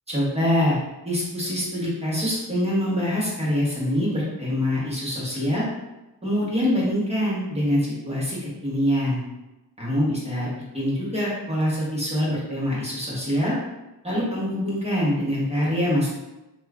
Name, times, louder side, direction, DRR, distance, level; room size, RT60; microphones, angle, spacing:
voice 1, 0.1-0.8 1.0-5.6 6.2-8.4 8.6-9.2 9.8-13.6 14.0-16.1, equal, 15° right, -7 dB, 1.1 m, -24 dB
2.9 x 2.4 x 3.5 m, 1.0 s
cardioid pair, 110°, 40 cm